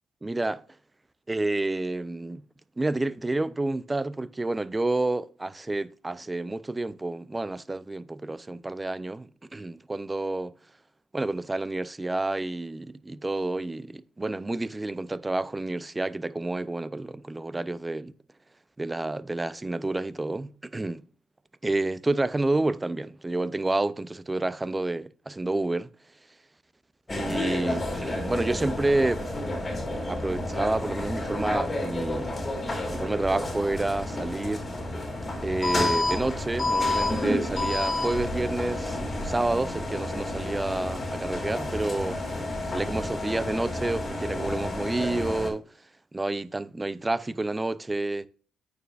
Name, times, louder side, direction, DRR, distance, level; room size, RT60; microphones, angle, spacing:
voice 1, 0.2-0.6 1.3-2.4 2.8-10.6 11.1-18.1 18.8-21.0 21.6-25.9 27.1-29.3 30.1-32.4 32.9-34.7 35.4-42.2 42.7-45.7 46.1-48.3, right 2 dB, 15° right, 0.5 m, -29 dB
sound 1, 27.1-45.5, left 2 dB, 25° left, 2.8 m, -30 dB
9.0 x 6.8 x 2.5 m
cardioid pair, 90°, 0 cm